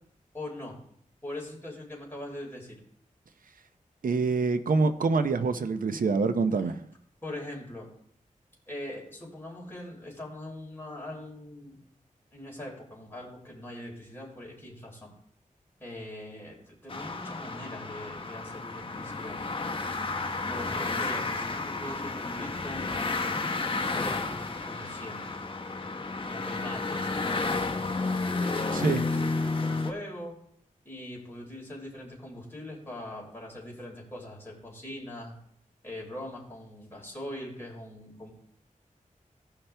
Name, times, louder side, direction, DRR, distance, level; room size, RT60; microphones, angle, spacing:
voice 1, 0.3-0.8 1.2-2.8 7.2-7.9 8.7-11.8 12.3-15.1 15.8-19.4 20.5-22.9 23.9-24.2 24.7-25.3 26.2-27.5 28.4-30.3 30.9-35.4 35.8-38.3, left 1 dB, 15° left, 3.7 m, -41 dB
voice 2, 4.0-6.9 28.7-29.0, right 4 dB, 80° right, 0.7 m, -26 dB
sound 1, 16.9-29.9, left 3 dB, 40° left, 0.9 m, -31 dB
15.5 x 5.7 x 3.4 m
wide cardioid pair, 85°, 14 cm